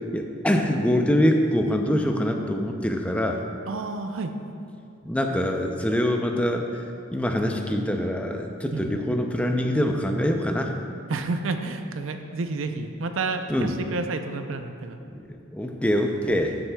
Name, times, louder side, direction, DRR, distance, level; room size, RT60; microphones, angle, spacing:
voice 1, 0.0-3.4 5.1-6.7 7.1-10.8 13.5-13.7 15.1-16.6, equal, 5° left, 3 dB, 0.5 m, -24 dB
voice 2, 3.7-4.3 8.7-9.0 11.1-15.0, right 3 dB, 80° right, 7 dB, 0.5 m, -30 dB
12.5 x 7.7 x 2.3 m, 2.5 s
head